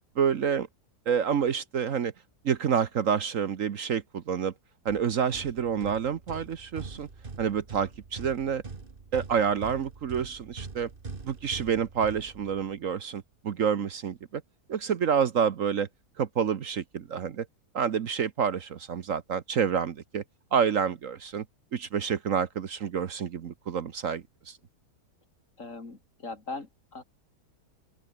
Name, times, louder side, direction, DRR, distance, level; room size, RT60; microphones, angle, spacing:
voice 1, 0.2-0.7 1.1-2.1 2.4-4.5 4.8-7.1 7.4-8.6 9.1-10.9 11.3-14.4 14.7-15.9 16.2-17.5 17.7-20.2 20.5-21.4 21.7-24.6, right 7 dB, 60° right, 1.3 m, -28 dB
sound 1, 4.9-12.9, right 4 dB, 35° right, 1.9 m, -43 dB
voice 2, 25.6-27.0, left 3 dB, 50° left, 3.7 m, -40 dB
open air
omnidirectional pair, 1.7 m